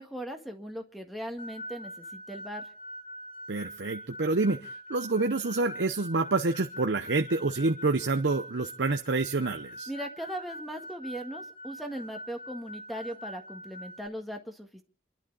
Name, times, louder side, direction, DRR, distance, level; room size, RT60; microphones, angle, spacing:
voice 1, 0.0-2.6 9.9-14.8, equal, ahead, 4 dB, 1.8 m, -39 dB
sound 1, 1.4-14.1, equal, 30° left, 0.7 m, -44 dB
voice 2, 3.5-9.9, right 3 dB, 80° right, 7 dB, 0.8 m, -28 dB
28.0 x 11.5 x 4.0 m, 0.39 s
head